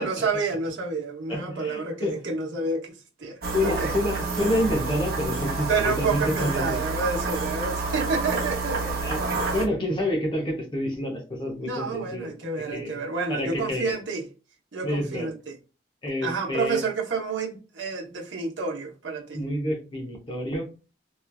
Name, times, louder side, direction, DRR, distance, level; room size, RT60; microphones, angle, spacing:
voice 1, 0.0-3.9 5.7-9.0 11.6-14.2 14.7-15.5 16.2-19.4, right 4 dB, 85° right, 0.8 m, -29 dB
voice 2, 1.3-2.1 3.5-6.8 9.0-13.0 13.3-13.9 14.8-15.3 16.0-16.8 19.3-20.7, left 1 dB, 25° left, 0.7 m, -28 dB
sound 1, 3.4-9.7, right 3 dB, 55° right, 0.7 m, -29 dB
3.0 x 2.3 x 2.2 m
head